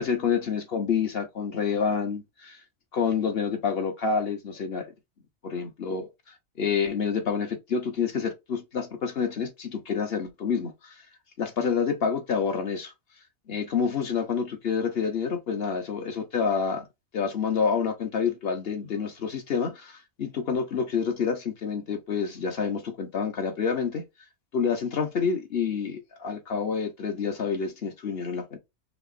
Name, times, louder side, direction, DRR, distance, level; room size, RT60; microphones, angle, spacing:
voice 1, 0.0-2.6 2.9-4.9 5.4-6.1 6.6-10.9 11.4-12.9 13.5-16.8 17.1-24.0 24.5-28.6, left 6 dB, 45° left, 1.1 m, -28 dB
5.0 x 3.0 x 2.6 m
omnidirectional pair, 1.5 m